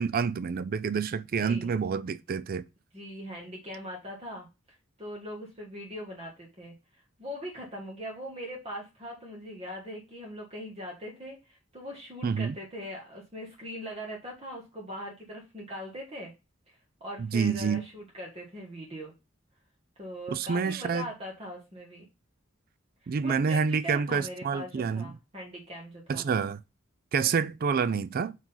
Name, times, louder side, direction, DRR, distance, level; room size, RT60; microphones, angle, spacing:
voice 1, 0.0-2.6 12.2-12.6 17.2-17.8 20.3-21.1 23.1-25.1 26.1-26.6 27.1-28.4, right 6 dB, 45° right, 0.4 m, -28 dB
voice 2, 1.4-1.7 2.9-4.5 5.0-16.3 16.7-19.1 20.0-22.0 23.0-26.3, equal, 30° right, 1.6 m, -41 dB
4.9 x 3.9 x 5.5 m
head